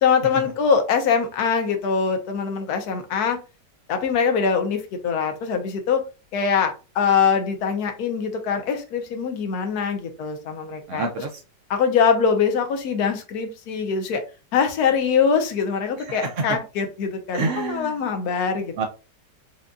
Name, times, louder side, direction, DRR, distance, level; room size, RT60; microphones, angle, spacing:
voice 1, 0.0-3.4 3.9-6.0 6.3-11.1 11.7-14.2 14.5-18.7, left 6 dB, 65° left, 1.2 m, -23 dB
voice 2, 10.9-11.4 16.1-16.5 17.3-18.0 18.8-18.9, right 3 dB, 70° right, 0.7 m, -27 dB
5.1 x 2.5 x 2.3 m
omnidirectional pair, 1.9 m